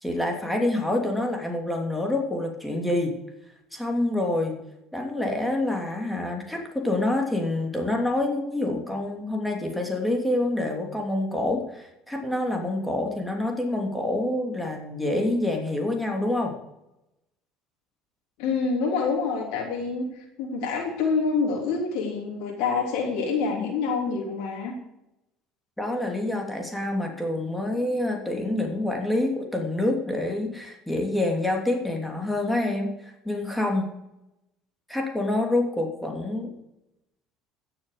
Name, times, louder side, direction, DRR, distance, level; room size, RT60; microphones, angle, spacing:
voice 1, 0.0-3.2 3.7-4.6 4.9-16.5 25.8-33.9 34.9-36.5, left 1 dB, 5° left, 1 dB, 3.0 m, -27 dB
voice 2, 18.4-20.1 20.4-24.7, left 4 dB, 80° left, -1 dB, 3.2 m, -26 dB
15.5 x 7.0 x 6.8 m, 0.89 s
supercardioid pair, 85°, 0 cm